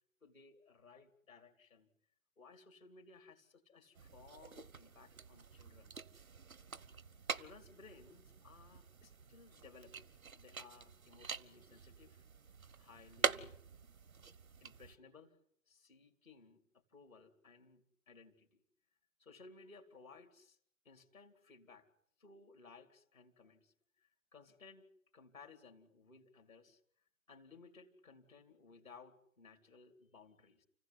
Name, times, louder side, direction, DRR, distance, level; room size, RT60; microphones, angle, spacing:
voice 1, 0.2-1.9 2.4-5.9 7.3-12.2 12.8-13.6 14.6-15.4 15.7-16.6 16.9-18.6 19.2-20.6 20.8-21.9 22.2-24.9 25.1-26.8 27.3-30.6, left 4 dB, 80° left, 5 dB, 2.8 m, -60 dB
sound 1, 3.9-15.0, right 5 dB, 90° right, 0.9 m, -45 dB
29.5 x 15.5 x 9.7 m, 0.69 s
figure-of-eight pair, 105°, 40 cm